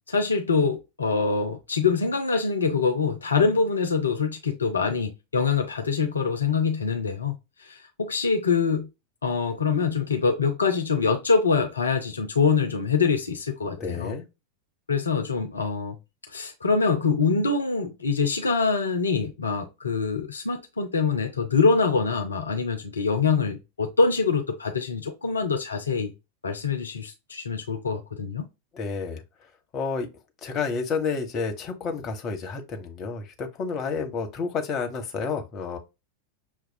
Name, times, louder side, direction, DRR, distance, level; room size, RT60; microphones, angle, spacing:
voice 1, 0.0-7.4 7.6-8.9 9.2-14.1 14.9-16.0 16.3-26.1 26.4-28.5, left 5 dB, 75° left, 0.6 m, -24 dB
voice 2, 13.6-14.2 28.7-29.2 29.7-30.1 30.4-35.8, left 5 dB, 30° left, 1.0 m, -30 dB
6.3 x 2.3 x 2.2 m
figure-of-eight pair, 90°, 0 cm